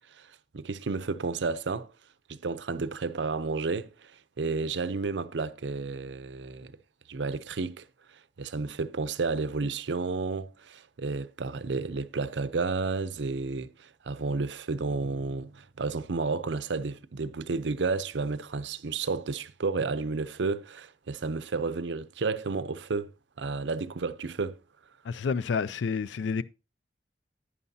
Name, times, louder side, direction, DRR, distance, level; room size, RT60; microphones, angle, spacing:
voice 1, 0.5-1.9 2.3-4.1 4.4-6.7 7.1-7.8 8.4-23.1 23.4-24.6, right 4 dB, 85° right, 0.6 m, -31 dB
voice 2, 25.1-26.4, left 5 dB, 85° left, 0.4 m, -29 dB
11.0 x 9.8 x 2.7 m
head